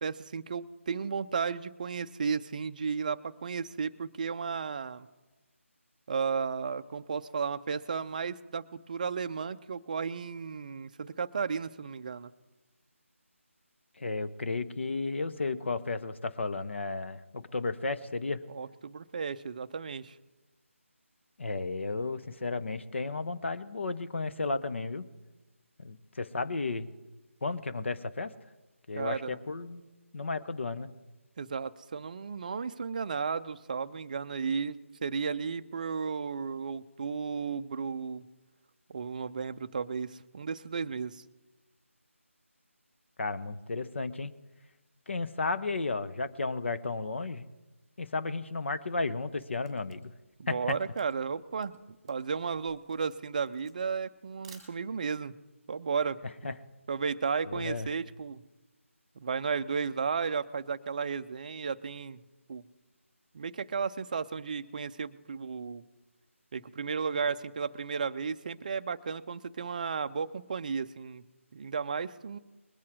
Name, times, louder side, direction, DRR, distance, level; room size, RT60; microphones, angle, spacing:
voice 1, 0.0-5.1 6.1-12.3 18.5-20.2 29.0-29.4 31.4-38.2 38.9-41.2 50.4-51.8 52.1-55.4 55.7-56.5 56.9-58.4 59.2-62.2 62.5-62.6 63.3-65.8 66.5-71.2 71.5-72.4, right 5 dB, 35° right, 11 dB, 0.5 m, -34 dB
voice 2, 14.0-18.4 21.4-25.0 25.8-26.9 27.4-28.3 28.9-29.8 30.1-30.9 43.2-44.3 45.1-47.5 48.0-50.1 50.5-50.8 56.4-56.5 57.5-57.9, left 3 dB, 55° left, 11 dB, 0.8 m, -33 dB
Camera, 49.4-55.2, right 5 dB, 5° right, 2.0 m, -58 dB
21.0 x 8.4 x 4.7 m, 1.1 s
figure-of-eight pair, 160°, 7 cm